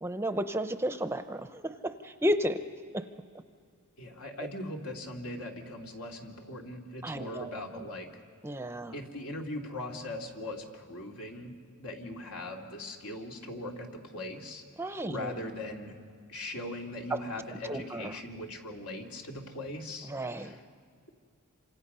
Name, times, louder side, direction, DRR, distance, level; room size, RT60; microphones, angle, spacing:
voice 1, 0.0-2.6 7.0-7.8 8.4-8.9 14.8-15.4 17.7-18.0 20.1-20.5, equal, 10° right, 9 dB, 0.6 m, -33 dB
voice 2, 4.0-8.2 8.9-11.5 11.8-14.6 15.0-15.9 16.3-20.1 20.4-20.6, left 1 dB, 80° left, 1 dB, 2.6 m, -40 dB
27.5 x 26.0 x 5.6 m, 2.1 s
head